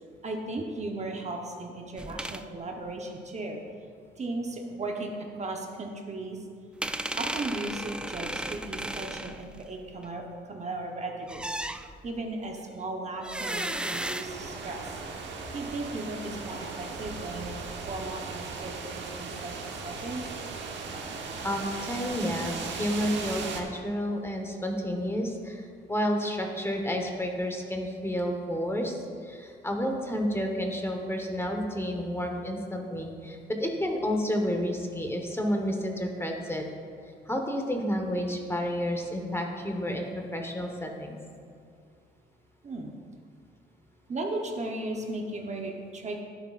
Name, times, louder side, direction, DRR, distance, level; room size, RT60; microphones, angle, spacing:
voice 1, 0.2-3.6 4.2-6.4 7.1-11.5 12.0-15.0 15.5-17.5 17.9-20.3 42.6-42.9 44.1-46.2, right 2 dB, 35° right, 1 dB, 1.0 m, -36 dB
sound 1, 2.0-2.4 6.8-10.1 11.3-12.2 13.2-15.0, right 1 dB, 5° right, 0.3 m, -35 dB
sound 2, 14.2-23.6, right 4 dB, 65° right, 1.2 m, -37 dB
voice 2, 21.4-29.0 29.2-36.7 37.3-41.2, equal, 10° left, 2 dB, 1.2 m, -30 dB
11.5 x 10.0 x 2.5 m, 2.2 s
cardioid pair, 90°, 20 cm